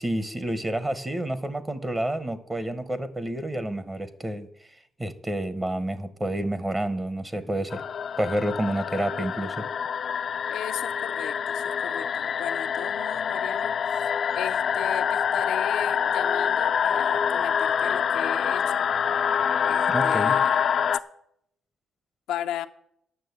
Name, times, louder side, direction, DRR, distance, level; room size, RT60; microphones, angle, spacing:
voice 1, 0.0-4.5 5.0-7.8 8.2-9.6 19.9-20.4, right 1 dB, 20° right, 0.8 m, -29 dB
sound 1, 7.7-21.0, left 7 dB, 55° left, 0.4 m, -26 dB
voice 2, 10.5-13.7 14.3-18.9 19.6-20.6 22.3-22.7, left 11 dB, 90° left, 0.7 m, -36 dB
9.0 x 6.4 x 8.0 m
cardioid pair, 90°, 0 cm